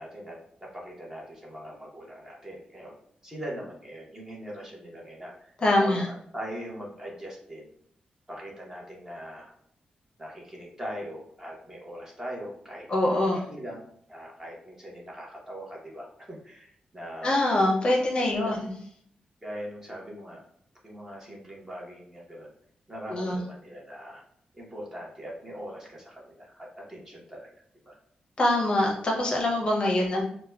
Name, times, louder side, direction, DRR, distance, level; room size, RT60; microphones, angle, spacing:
voice 1, 0.0-3.0 3.2-7.7 8.3-9.5 10.2-17.5 17.8-18.6 19.4-20.4 20.8-22.5 22.9-24.2 24.5-27.5 27.8-28.0, equal, 20° right, -3 dB, 0.9 m, -41 dB
voice 2, 5.6-6.1 12.9-13.4 17.2-18.7 23.1-23.4 28.4-30.2, left 1 dB, 35° left, -1 dB, 0.6 m, -24 dB
4.5 x 2.1 x 2.2 m, 0.66 s
wide cardioid pair, 140°, 3 cm